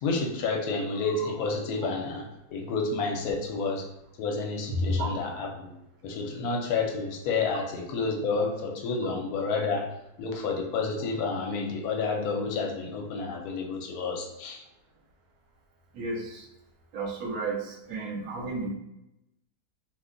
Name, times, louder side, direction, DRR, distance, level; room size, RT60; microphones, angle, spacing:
voice 1, 0.0-3.9 4.2-5.7 6.0-9.9 10.2-14.6, left 4 dB, 75° left, 1 dB, 1.1 m, -30 dB
voice 2, 4.7-5.1 15.9-16.5 16.9-18.7, right 1 dB, 75° right, 0 dB, 1.1 m, -31 dB
2.7 x 2.1 x 3.6 m, 0.87 s
omnidirectional pair, 1.6 m